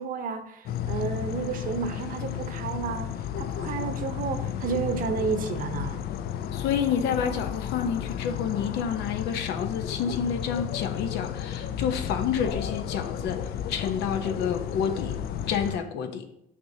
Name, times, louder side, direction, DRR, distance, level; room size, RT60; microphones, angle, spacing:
voice 1, 0.0-3.1 3.4-6.0, right 6 dB, 55° right, 0.8 m, -31 dB
sound 1, 0.7-15.8, left 9 dB, 65° left, 0.4 m, -33 dB
voice 2, 6.5-15.2 15.5-16.2, left 7 dB, 85° left, 0.8 m, -29 dB
6.2 x 6.0 x 2.8 m
cardioid pair, 110°, 17 cm